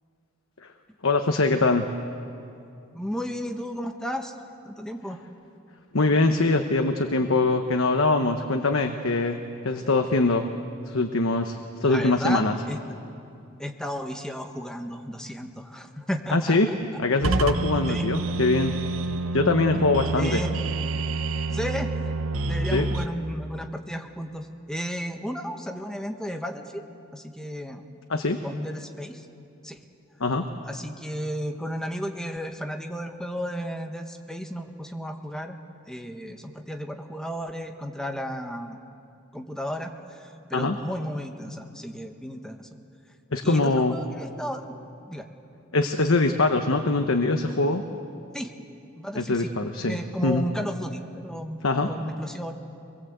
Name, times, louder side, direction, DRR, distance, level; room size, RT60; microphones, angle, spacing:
voice 1, 1.0-1.9 5.9-10.5 10.9-12.5 16.3-16.7 17.0-18.8 19.3-20.4 22.7-22.9 28.1-28.4 30.2-30.5 40.5-40.8 43.3-44.0 45.7-47.8 49.1-50.5 51.6-51.9, left 3 dB, 75° left, 5 dB, 1.1 m, -23 dB
voice 2, 2.9-4.3 4.6-5.2 11.8-12.8 13.6-17.0 17.9-18.1 20.2-20.6 21.5-21.9 22.4-26.8 27.1-27.8 28.4-29.3 29.6-29.8 30.6-35.6 35.9-38.8 39.3-42.7 43.4-44.7 45.1-45.3 48.3-48.5 48.9-49.5 49.8-51.6 51.8-52.5, equal, 5° left, 4 dB, 1.4 m, -33 dB
sound 1, 17.2-23.1, right 2 dB, 75° right, 0.9 m, -28 dB
26.0 x 21.5 x 8.1 m, 2.7 s
head